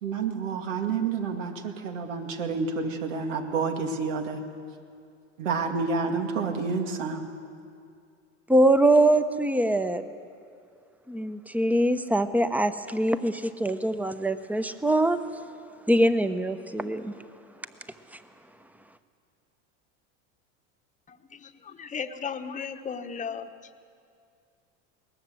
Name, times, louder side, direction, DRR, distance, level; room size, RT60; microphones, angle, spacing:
voice 1, 0.0-4.4 5.4-7.2, right 4 dB, 85° right, 4 dB, 2.4 m, -29 dB
voice 2, 8.5-10.0 11.1-15.2 15.9-17.1, right 1 dB, 5° right, 11 dB, 0.9 m, -23 dB
voice 3, 21.1-23.5, left 6 dB, 20° left, 8 dB, 1.2 m, -36 dB
21.5 x 19.0 x 7.8 m, 2.4 s
supercardioid pair, 115°, 36 cm